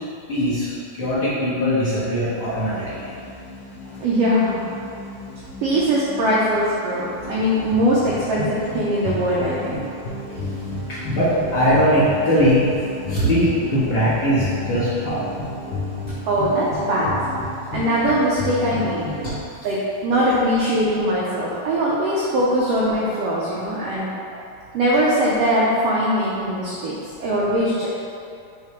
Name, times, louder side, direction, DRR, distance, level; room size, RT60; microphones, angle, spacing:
voice 1, 0.3-3.1 10.3-10.4 10.9-12.7 13.1-15.3, equal, 50° left, -12 dB, 1.6 m, -20 dB
sound 1, 2.2-19.3, left 2 dB, 70° left, 2.1 m, -32 dB
voice 2, 4.0-4.6 5.6-9.8 16.3-17.1 17.7-19.0 19.6-24.1 24.7-27.9, equal, 90° right, -6 dB, 1.4 m, -21 dB
6.6 x 3.3 x 4.4 m, 2.6 s
omnidirectional pair, 3.8 m